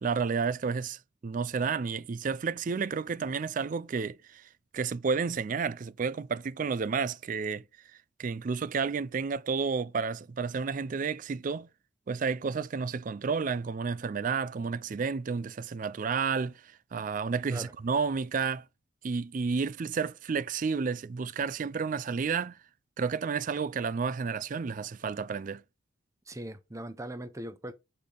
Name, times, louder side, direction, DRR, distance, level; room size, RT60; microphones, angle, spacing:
voice 1, 0.0-7.6 8.2-11.7 12.1-18.6 19.0-22.6 23.0-25.6, right 5 dB, 40° right, 0.3 m, -31 dB
voice 2, 26.3-27.7, right 1 dB, 15° right, 0.7 m, -40 dB
6.7 x 5.2 x 3.9 m
head